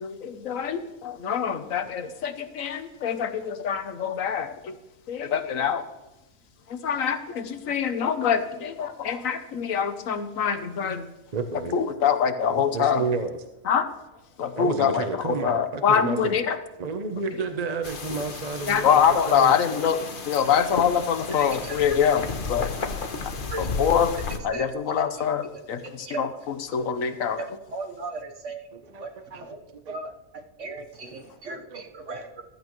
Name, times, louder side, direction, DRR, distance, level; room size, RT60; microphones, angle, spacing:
voice 1, 0.0-4.7 5.1-5.8 6.7-11.1 11.7-13.1 13.7-13.9 14.4-16.6 18.7-22.7 23.6-24.1 24.4-27.5, left 7 dB, 75° left, 1.3 m, -25 dB
voice 2, 11.3-11.7 12.5-13.4 14.6-16.4 16.8-19.0 19.3-19.6 28.7-29.5 29.7-30.0 31.7-31.8, right 4 dB, 35° right, 0.7 m, -31 dB
sound 1, 17.8-24.4, left 4 dB, 45° left, 1.1 m, -33 dB
voice 3, 24.5-25.0 26.0-26.2 27.4-27.5 27.7-28.7 29.0-29.1 29.4-29.6 29.9-30.1 30.6-32.4, right 3 dB, 65° right, 1.4 m, -36 dB
15.0 x 12.5 x 3.1 m
omnidirectional pair, 1.4 m